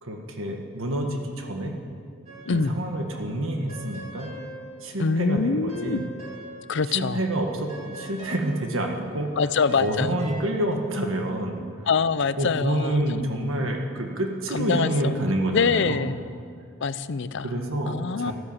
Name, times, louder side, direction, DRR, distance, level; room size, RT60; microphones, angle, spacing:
voice 1, 0.0-1.8 2.4-4.3 4.8-6.1 6.9-9.3 9.8-11.6 12.4-16.0 17.4-18.3, right 1 dB, 70° right, 2 dB, 1.6 m, -28 dB
sound 1, 2.3-2.9 3.2-6.9 7.2-10.4, right 1 dB, 30° right, 3.9 m, -44 dB
voice 2, 2.5-2.8 5.0-6.0 6.7-7.2 9.4-10.2 11.9-13.2 14.5-16.2 16.8-18.3, left 5 dB, 60° left, 15 dB, 0.5 m, -25 dB
13.0 x 13.0 x 7.3 m, 2.3 s
head